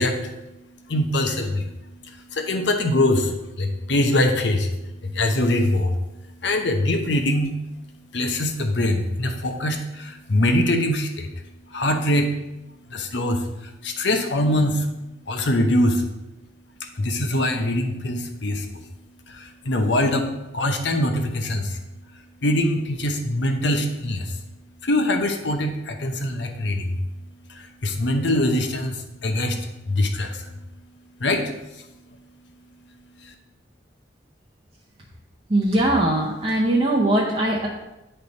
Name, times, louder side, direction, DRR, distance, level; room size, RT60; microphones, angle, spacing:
voice 1, 0.0-7.8 8.1-12.4 12.9-14.9 15.3-16.0 16.8-18.9 19.3-21.8 22.1-24.4 24.8-27.0 27.5-30.6 31.2-32.2 33.2-33.3, left 1 dB, 70° left, 5 dB, 0.8 m, -24 dB
voice 2, 35.5-37.7, right 1 dB, 30° right, -5 dB, 0.7 m, -20 dB
9.9 x 3.4 x 4.0 m, 0.98 s
head